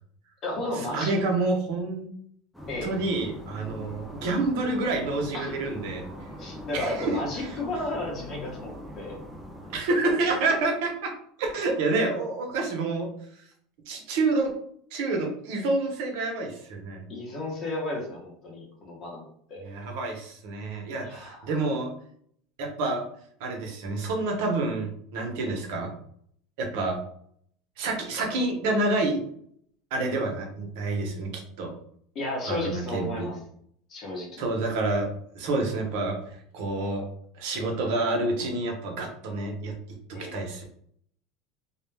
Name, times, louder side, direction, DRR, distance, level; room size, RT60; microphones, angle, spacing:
voice 1, 0.4-1.1 2.7-2.9 5.3-5.5 6.4-9.2 17.1-19.6 21.0-21.5 32.1-33.4 33.9-34.4 40.1-40.4, left 1 dB, 35° left, -2 dB, 0.9 m, -33 dB
voice 2, 0.9-2.1 2.8-6.0 6.7-7.2 9.7-11.1 11.4-13.1 13.9-14.5 14.9-17.0 19.6-21.9 22.6-23.0 23.4-25.9 26.6-27.0 27.8-29.2 29.9-31.3 31.6-31.7 32.5-33.3 34.4-36.2 36.5-37.0 37.3-39.7 40.1-40.6, right 2 dB, 70° right, 2 dB, 0.8 m, -28 dB
sound 1, 2.5-9.8, equal, ahead, 0.5 m, -42 dB
2.3 x 2.2 x 3.2 m, 0.65 s
supercardioid pair, 140°, 0 cm